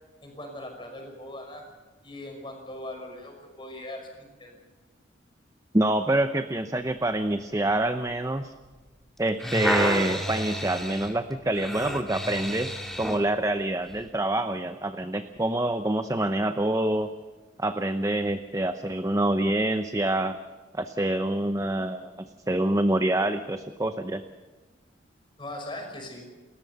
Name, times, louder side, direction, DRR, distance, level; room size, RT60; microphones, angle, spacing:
voice 1, 0.2-1.6 2.0-4.6 25.4-26.3, left 1 dB, 25° left, 2 dB, 5.7 m, -40 dB
voice 2, 5.7-8.5 9.2-17.1 17.6-20.4 20.7-24.2, right 1 dB, 15° right, 8 dB, 0.8 m, -26 dB
sound 1, 9.2-13.3 13.9-14.0, equal, ahead, 2.4 m, -30 dB
29.5 x 14.0 x 6.8 m, 1.3 s
head